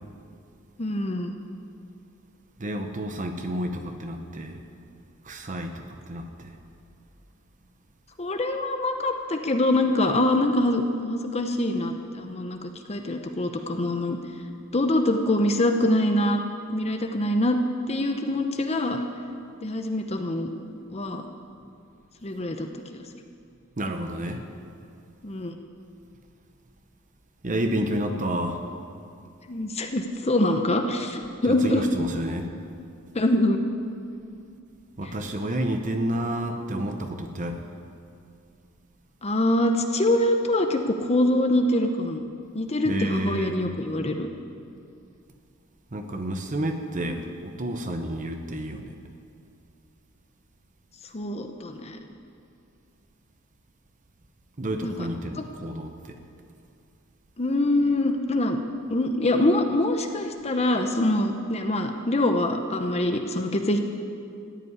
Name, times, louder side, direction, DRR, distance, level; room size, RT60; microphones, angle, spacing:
voice 1, 0.8-1.4 8.2-14.2 14.7-16.4 16.7-17.6 17.9-19.0 19.6-20.5 20.9-21.2 22.2-23.0 25.2-25.5 29.5-31.8 33.1-33.6 35.0-35.1 39.2-42.2 42.5-44.3 51.1-52.0 54.8-55.1 55.4-55.5 57.4-58.6 58.9-63.8, left 1 dB, 30° left, 5 dB, 0.8 m, -24 dB
voice 2, 2.6-4.6 5.2-6.5 23.8-24.4 27.4-28.6 31.5-32.5 35.0-37.6 42.8-43.6 45.9-48.9 54.6-56.2, right 1 dB, 40° right, 5 dB, 1.0 m, -30 dB
14.0 x 8.3 x 9.7 m, 2.5 s
head